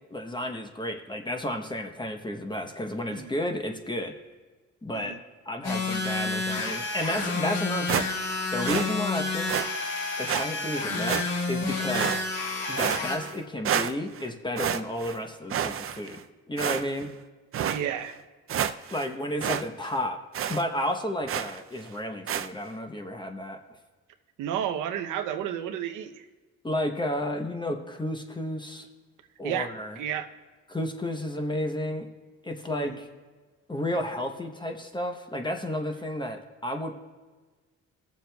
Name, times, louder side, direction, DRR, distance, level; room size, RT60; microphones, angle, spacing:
voice 1, 0.1-4.1 4.8-5.2 5.5-8.0 8.5-9.5 10.2-12.2 12.7-16.2 16.5-17.1 18.9-20.2 20.5-23.6 26.6-28.9 29.4-30.0 30.7-32.1 32.4-33.1 33.7-36.9, left 1 dB, 15° left, 4 dB, 0.9 m, -32 dB
sound 1, 5.6-13.2, left 3 dB, 85° left, 1.9 m, -30 dB
sound 2, 7.9-8.4 8.6-8.9 9.5-9.7 10.3-10.4 11.1-11.5 11.9-12.5 12.8-13.4 13.6-14.2 14.6-15.2 15.5-16.2 16.6-17.1 17.5-17.8 18.2-18.3 18.5-19.1 19.4-19.6 19.9-20.0 20.3-20.6 21.3-21.6 22.3-22.5, right 9 dB, 45° right, 0.5 m, -29 dB
voice 2, 17.7-18.2 24.4-26.2 29.4-30.3 32.7-33.0, right 10 dB, 90° right, 6 dB, 0.8 m, -32 dB
21.5 x 7.3 x 2.3 m, 1.3 s
cardioid pair, 90°, 30 cm